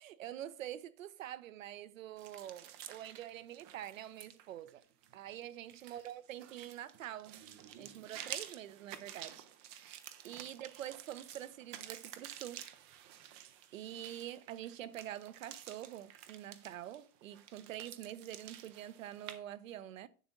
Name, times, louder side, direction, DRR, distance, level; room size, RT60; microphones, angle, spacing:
voice 1, 0.0-4.8 5.1-7.4 7.8-9.5 9.9-12.6 13.7-20.1, right 12 dB, 60° right, 0.9 m, -46 dB
sound 1, 2.2-19.4, right 11 dB, 20° right, 0.5 m, -51 dB
10.5 x 6.9 x 3.9 m
hypercardioid pair, 135°, 44 cm